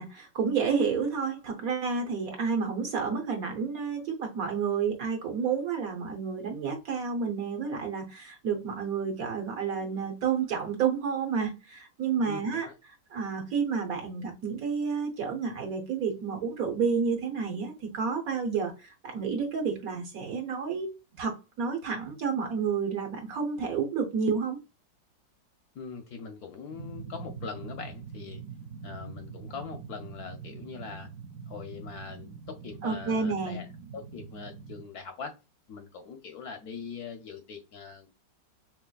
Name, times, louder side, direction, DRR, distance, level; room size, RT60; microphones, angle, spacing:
voice 1, 0.0-12.7 13.1-20.9 21.2-24.6 32.8-33.6, right 6 dB, 60° right, 1.1 m, -30 dB
voice 2, 12.3-12.7 25.7-28.4 28.8-31.1 31.5-33.7 33.9-35.4 35.7-38.1, left 5 dB, 70° left, 1.0 m, -42 dB
sound 1, 26.7-34.8, right 5 dB, 80° right, 0.7 m, -44 dB
4.7 x 3.0 x 2.2 m
omnidirectional pair, 2.0 m